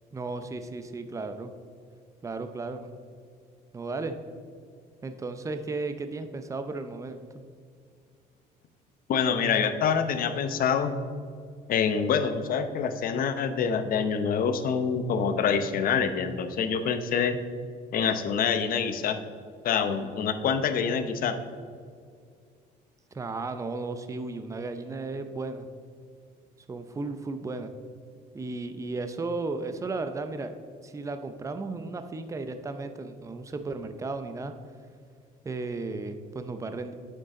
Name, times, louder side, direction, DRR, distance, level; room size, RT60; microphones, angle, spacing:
voice 1, 0.1-1.5 2.2-2.9 3.7-4.2 5.0-7.2 23.1-25.7 26.7-27.7 28.3-30.6 30.8-34.5 35.4-36.9, right 3 dB, 20° right, 8 dB, 0.6 m, -34 dB
voice 2, 9.1-10.9 11.7-17.4 17.9-19.2 19.6-21.3, left 6 dB, 60° left, 9 dB, 0.8 m, -26 dB
9.2 x 6.6 x 3.8 m, 2.2 s
cardioid pair, 110°, 17 cm